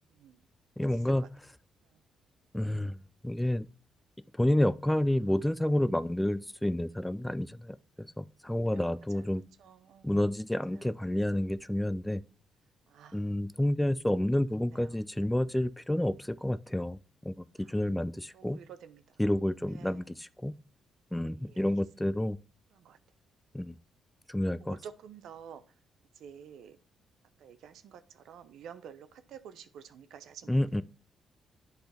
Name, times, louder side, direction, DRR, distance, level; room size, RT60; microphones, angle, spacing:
voice 1, 0.1-0.4 1.2-1.3 8.5-8.9 9.1-9.3 9.6-10.2 10.7-11.0 12.9-13.2 14.7-15.0 18.3-19.0 19.7-20.1 21.3-21.6 22.7-23.0 24.7-25.6 26.2-26.8 27.4-30.6, right 8 dB, 75° right, 0.6 m, -50 dB
voice 2, 0.8-1.2 2.5-3.7 4.4-9.4 10.0-12.2 13.1-18.6 19.2-20.5 21.1-22.4 23.5-23.7 24.3-24.8 30.5-30.8, left 1 dB, 5° left, 0.3 m, -29 dB
10.5 x 3.9 x 3.4 m
cardioid pair, 90°, 0 cm